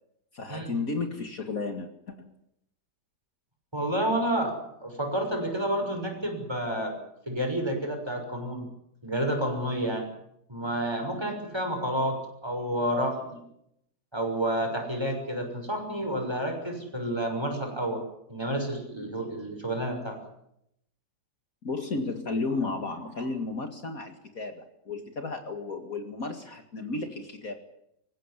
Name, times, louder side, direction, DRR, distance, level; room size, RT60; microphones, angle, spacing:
voice 1, 0.3-2.3 21.6-27.6, left 3 dB, 55° left, 6 dB, 2.5 m, -33 dB
voice 2, 3.7-6.9 7.3-8.7 9.0-10.1 10.5-13.4 14.1-18.0 18.3-20.2, right 1 dB, 15° right, 3 dB, 6.2 m, -30 dB
26.0 x 15.5 x 10.0 m, 0.79 s
omnidirectional pair, 1.8 m